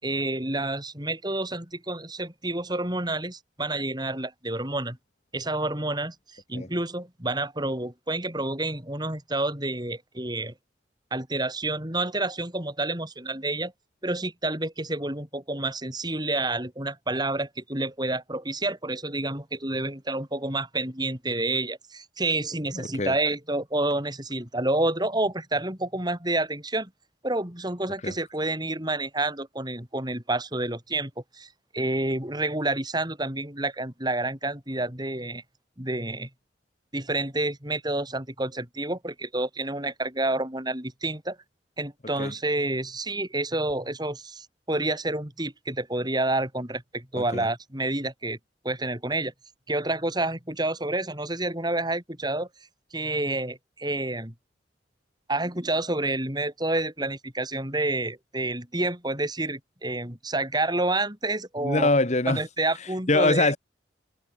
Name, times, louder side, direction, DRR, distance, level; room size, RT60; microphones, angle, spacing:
voice 1, 0.0-5.0 5.3-10.5 11.1-13.7 14.0-26.9 27.2-31.5 31.7-35.4 35.8-36.3 36.9-41.4 41.8-48.4 48.6-49.3 49.7-52.5 52.9-54.3 55.3-61.9 62.3-63.5, right 2 dB, 25° right, 7.0 m, -29 dB
voice 2, 61.6-62.4 63.1-63.6, left 2 dB, 40° left, 1.7 m, -23 dB
head